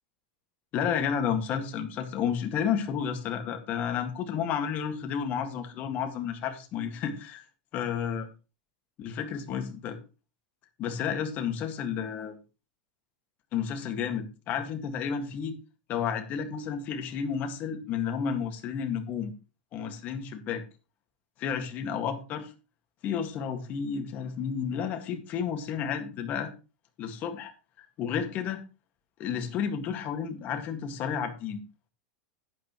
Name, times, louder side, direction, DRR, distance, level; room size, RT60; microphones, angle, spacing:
voice 1, 0.7-7.4 7.7-8.3 9.0-10.0 10.8-12.4 13.5-15.6 15.9-19.3 19.7-20.6 21.4-22.5 23.0-26.5 27.0-27.5 27.8-28.6 29.2-31.6, left 7 dB, 35° left, 6 dB, 1.8 m, -31 dB
11.5 x 9.0 x 3.1 m, 0.30 s
supercardioid pair, 150°, 5 cm